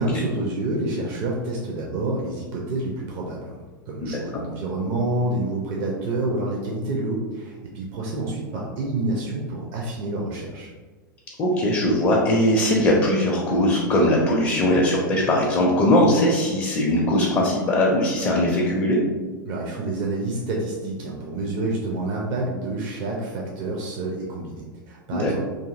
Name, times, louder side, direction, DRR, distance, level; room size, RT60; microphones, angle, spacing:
voice 1, 0.0-3.6 3.9-10.7 19.5-25.4, right 2 dB, 40° right, -3 dB, 0.5 m, -28 dB
voice 2, 4.0-4.4 11.4-19.0 25.1-25.3, left 1 dB, 25° left, -2 dB, 0.4 m, -20 dB
2.6 x 2.6 x 2.4 m, 1.4 s
figure-of-eight pair, 95°, 11 cm